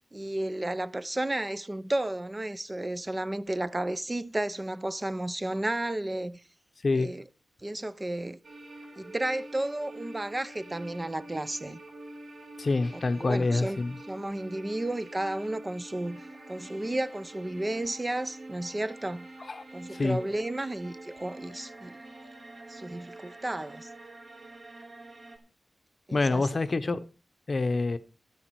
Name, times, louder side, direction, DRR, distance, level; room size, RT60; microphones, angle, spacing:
voice 1, 0.1-6.4 6.9-7.2 7.6-8.4 9.0-11.8 12.9-13.8 14.1-16.2 16.5-19.3 19.7-22.0 22.7-23.9 26.1-26.5, right 1 dB, 20° right, 0.5 m, -32 dB
sound 1, 8.4-25.4, right 2 dB, 60° right, 3.2 m, -46 dB
voice 2, 12.6-14.0 19.5-19.6 19.9-20.2 26.1-27.0 27.5-28.0, left 3 dB, 45° left, 0.8 m, -26 dB
12.0 x 10.0 x 4.6 m
wide cardioid pair, 120°, 0 cm